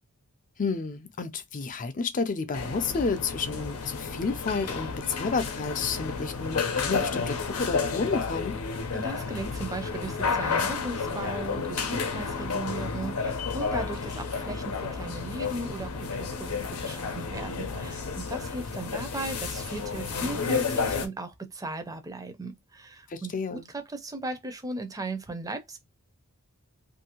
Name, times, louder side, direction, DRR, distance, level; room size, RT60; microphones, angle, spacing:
voice 1, 0.6-8.6 23.1-23.7, left 4 dB, 35° left, 0.5 m, -31 dB
sound 1, 2.5-21.1, left 5 dB, 85° left, 0.7 m, -31 dB
voice 2, 8.9-25.8, right 2 dB, 15° right, 0.6 m, -37 dB
2.7 x 2.6 x 2.8 m
head